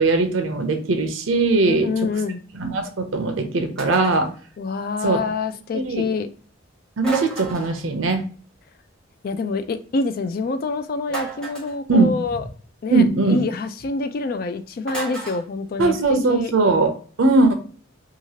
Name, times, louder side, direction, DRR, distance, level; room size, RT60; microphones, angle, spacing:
voice 1, 0.0-1.9 2.5-4.3 5.0-5.2 5.7-6.1 7.0-8.2 11.9-12.1 12.9-13.4 15.8-16.9 17.2-17.5, right 3 dB, 85° right, 0.7 m, -19 dB
voice 2, 1.7-2.4 4.6-6.3 9.2-12.4 12.8-16.5, left 3 dB, 45° left, 0.3 m, -26 dB
sound 1, 3.8-4.3 7.0-7.8 11.1-11.8 14.9-15.4, right 5 dB, 5° left, 0.8 m, -31 dB
2.9 x 2.4 x 2.8 m
head